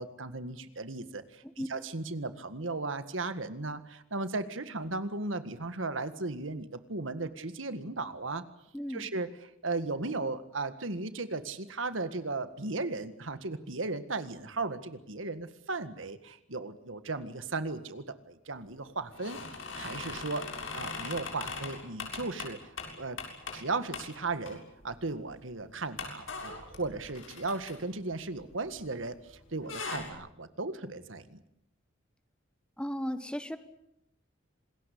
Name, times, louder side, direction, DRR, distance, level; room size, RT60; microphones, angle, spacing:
voice 1, 0.0-8.4 8.9-9.3 9.6-19.4 19.7-20.5 20.7-22.6 23.0-23.2 23.5-24.6 24.8-31.4, right 3 dB, 85° right, 11 dB, 1.8 m, -36 dB
voice 2, 8.7-9.1 32.8-33.6, equal, 5° left, 11 dB, 1.4 m, -35 dB
sound 1, 19.1-23.7 23.9-24.1 24.5-24.9 25.3-25.4 26.0-29.0 29.3-30.1, left 4 dB, 80° left, 7.0 m, -40 dB
27.5 x 20.5 x 8.5 m, 0.80 s
head